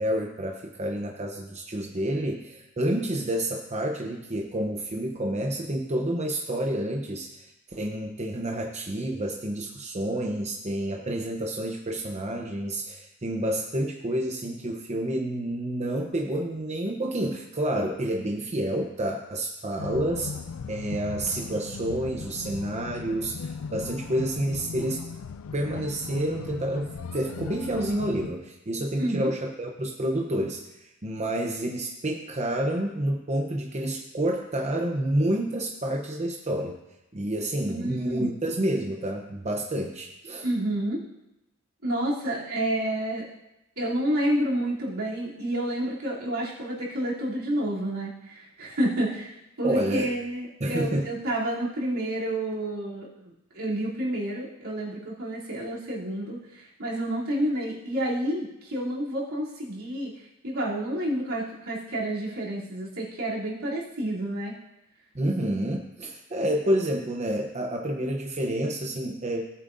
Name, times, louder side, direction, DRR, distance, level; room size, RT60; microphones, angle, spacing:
voice 1, 0.0-20.4 20.7-25.0 25.5-36.8 37.1-40.5 49.6-50.1 50.6-51.1 65.1-69.4, right 1 dB, 30° right, 1 dB, 0.8 m, -29 dB
sound 1, 19.8-28.3, left 5 dB, 75° left, 0.4 m, -38 dB
voice 2, 29.0-29.3 37.7-38.3 40.4-41.0 41.8-43.3 43.8-60.1 60.4-64.5, right 1 dB, 70° right, -6 dB, 3.1 m, -29 dB
18.0 x 8.4 x 2.6 m, 0.93 s
head